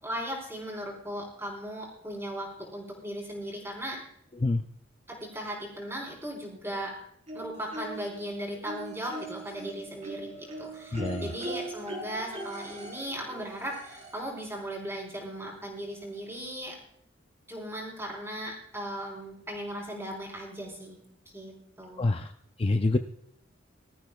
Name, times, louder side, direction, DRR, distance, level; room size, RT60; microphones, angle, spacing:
voice 1, 0.0-4.0 5.1-7.0 7.3-16.8 17.5-21.0 21.3-22.1, equal, 15° right, -1 dB, 4.2 m, -37 dB
sound 1, 7.3-8.2 8.7-14.3 15.6-15.7 16.0-16.1, right 2 dB, 35° right, 4.0 m, -40 dB
voice 2, 10.9-11.3 22.0-22.3 22.6-23.0, left 2 dB, 30° left, 6 dB, 0.5 m, -26 dB
22.0 x 13.5 x 2.3 m, 0.72 s
head